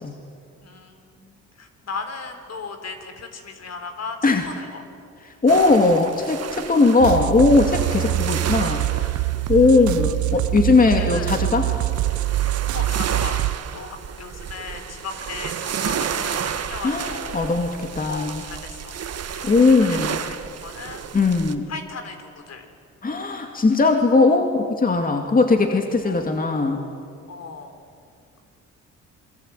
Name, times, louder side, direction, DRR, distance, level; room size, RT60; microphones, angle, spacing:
voice 1, 0.6-4.7 8.0-8.1 9.5-9.8 10.8-11.3 12.7-13.4 13.7-17.5 18.1-18.9 19.3-19.5 19.9-20.4 20.6-21.0 21.7-22.6 26.0-26.3 27.3-27.7, left 4 dB, 60° left, 7 dB, 4.0 m, -36 dB
voice 2, 5.4-8.8 9.5-11.7 16.8-18.4 19.4-20.2 21.1-21.7 23.0-26.8, left 3 dB, 30° left, 4 dB, 2.5 m, -19 dB
sound 1, 5.5-21.5, right 8 dB, 55° right, 1.8 m, -32 dB
sound 2, 7.0-13.6, right 16 dB, 70° right, 0.7 m, -24 dB
27.0 x 22.0 x 9.3 m, 2.3 s
cardioid pair, 90°, 30 cm